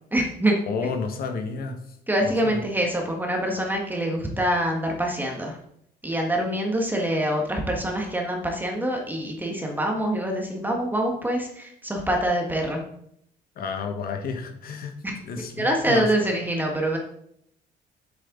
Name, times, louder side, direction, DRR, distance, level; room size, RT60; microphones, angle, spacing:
voice 1, 0.1-0.7 2.1-5.6 6.0-12.8 15.0-15.1 15.6-17.0, right 1 dB, 10° right, 1 dB, 1.5 m, -25 dB
voice 2, 0.7-1.8 2.2-2.6 13.6-14.9 15.2-16.1, left 5 dB, 60° left, 5 dB, 1.4 m, -31 dB
7.6 x 7.6 x 3.9 m, 0.71 s
cardioid pair, 110°, 17 cm